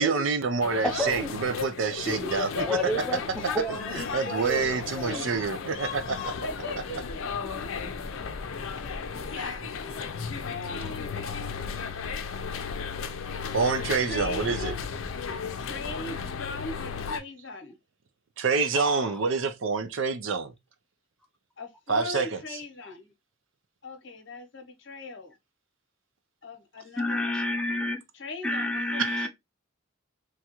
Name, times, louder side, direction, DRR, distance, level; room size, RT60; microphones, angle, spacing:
voice 1, 0.0-2.8 4.1-6.2 9.3-9.6 13.5-14.7 18.4-20.5 21.9-22.4 29.0-29.3, right 5 dB, 75° right, 0.5 m, -27 dB
sound 1, 0.6-17.2, left 6 dB, 90° left, 0.5 m, -35 dB
voice 2, 0.8-1.4 2.6-5.3 18.7-19.3 27.0-28.0 28.4-29.3, left 1 dB, 5° left, 0.5 m, -31 dB
voice 3, 2.0-3.6 4.0-5.7 6.2-9.3 9.8-11.6 14.1-14.8 15.6-17.7 21.6-23.1 23.8-25.3 26.4-27.4 28.1-29.3, left 3 dB, 65° left, 0.8 m, -39 dB
3.1 x 2.3 x 2.9 m
head